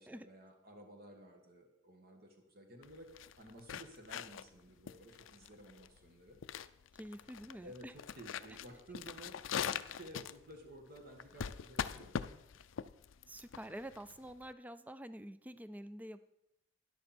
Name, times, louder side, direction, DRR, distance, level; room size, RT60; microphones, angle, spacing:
voice 1, 0.0-6.4 7.5-12.1, right 1 dB, 50° right, 3 dB, 1.7 m, -54 dB
sound 1, 2.8-14.5, left 7 dB, 80° left, 0.5 m, -42 dB
voice 2, 6.9-7.9 13.3-16.2, right 1 dB, 10° right, 14 dB, 0.4 m, -48 dB
13.5 x 10.5 x 4.4 m, 0.86 s
head